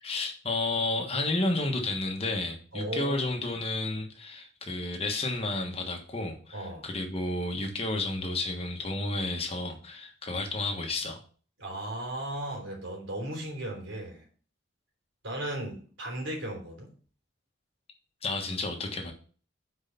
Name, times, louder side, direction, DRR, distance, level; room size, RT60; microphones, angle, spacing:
voice 1, 0.0-11.2 18.2-19.1, left 2 dB, 30° left, 3 dB, 1.4 m, -31 dB
voice 2, 2.7-3.2 6.5-6.9 11.6-14.3 15.2-16.9, right 1 dB, 75° right, 1 dB, 3.4 m, -36 dB
6.4 x 4.8 x 6.8 m, 0.41 s
head